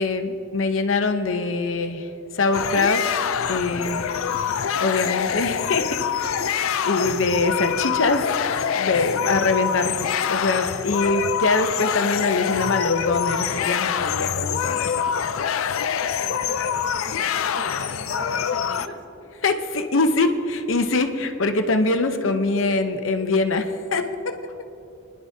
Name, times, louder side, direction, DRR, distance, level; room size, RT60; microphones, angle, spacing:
voice 1, 0.0-2.1 2.3-3.0 3.5-4.0 4.3-4.5 4.8-5.9 6.2-6.5 6.8-8.3 8.7-15.2 19.4-24.4, left 3 dB, 65° left, 6 dB, 0.8 m, -23 dB
sound 1, 2.5-18.9, left 8 dB, 85° left, 0.4 m, -25 dB
voice 2, 16.2-19.0, right 1 dB, 60° right, 2 dB, 1.4 m, -40 dB
24.0 x 10.5 x 2.8 m, 2.8 s
head